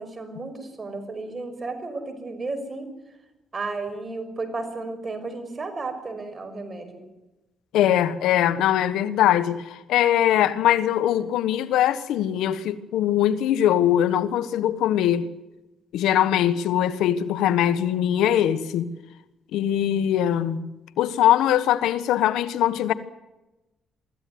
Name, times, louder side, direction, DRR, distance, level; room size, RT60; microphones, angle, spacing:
voice 1, 0.0-2.9 3.5-7.0, right 3 dB, 30° right, 5.8 m, -33 dB
voice 2, 7.7-15.3 15.9-18.9 19.5-20.7 21.0-22.9, left 11 dB, 85° left, 1.4 m, -21 dB
24.5 x 15.0 x 9.5 m
cardioid pair, 90°, 0 cm